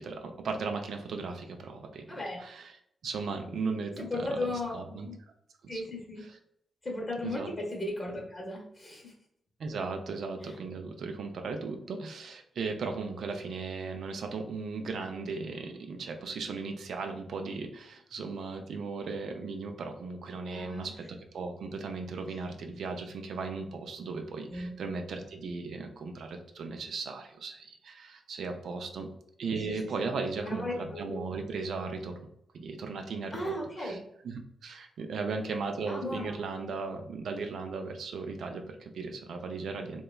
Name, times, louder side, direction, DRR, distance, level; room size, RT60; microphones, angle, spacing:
voice 1, 0.5-1.3 3.0-3.9 4.7-5.1 7.2-7.5 9.6-11.8 12.0-16.0 16.2-17.7 18.1-19.7 20.0-20.9 21.3-22.5 22.8-24.2 24.8-25.9 26.6-27.5 28.3-29.1 29.4-31.9 32.6-33.3 35.0-38.6 39.3-39.9, right 4 dB, 80° right, 5 dB, 0.4 m, -36 dB
voice 2, 2.1-2.4 4.0-5.1 5.7-6.2 6.8-9.1 10.4-10.5 20.5-20.9 24.5-24.7 29.7-29.8 30.4-31.2 33.3-34.0 35.9-36.4, left 1 dB, 35° left, -2 dB, 0.7 m, -36 dB
2.9 x 2.2 x 2.3 m, 0.73 s
cardioid pair, 85°, 0 cm